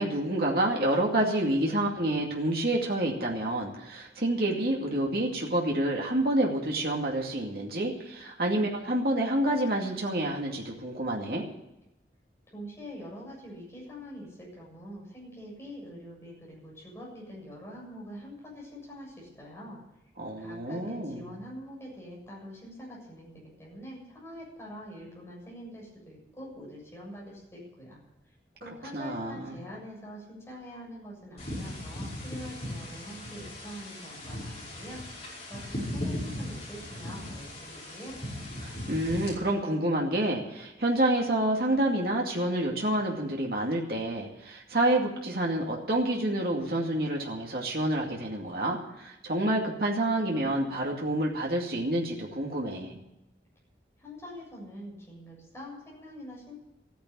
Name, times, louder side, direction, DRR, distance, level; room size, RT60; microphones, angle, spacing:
voice 1, 0.0-11.4 20.2-21.3 28.9-29.5 38.6-53.0, right 1 dB, 55° right, -1 dB, 2.4 m, -28 dB
voice 2, 12.5-19.8 20.4-28.0 28.6-35.0 35.5-38.2 54.0-56.6, equal, 15° left, -4 dB, 7.3 m, -44 dB
sound 1, 31.4-39.3, left 1 dB, 35° left, 5.8 m, -38 dB
14.0 x 10.5 x 8.7 m, 0.91 s
head